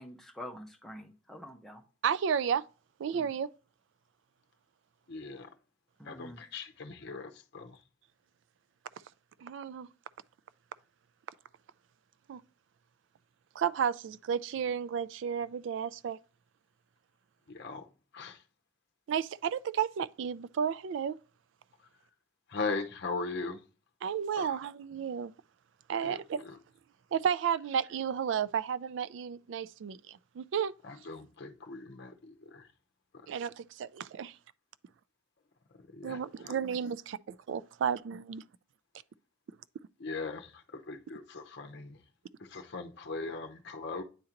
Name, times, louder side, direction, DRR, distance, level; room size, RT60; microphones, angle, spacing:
voice 1, 0.0-1.8 3.1-3.3 6.0-6.4, left 1 dB, ahead, 0.8 m, -46 dB
voice 2, 2.0-2.6 3.0-3.5 9.4-9.9 12.3-12.4 13.6-16.2 19.1-21.2 24.0-25.3 25.9-26.5 27.1-30.7 33.3-34.4 36.0-38.4, right 7 dB, 65° right, 0.3 m, -32 dB
voice 3, 5.1-5.5 6.0-7.8 17.5-17.9 18.1-18.4 22.5-23.6 24.4-24.6 26.0-26.6 30.8-32.7 35.7-36.6 40.0-42.0 42.4-44.0, left 3 dB, 55° left, 0.7 m, -39 dB
9.0 x 3.8 x 2.9 m
head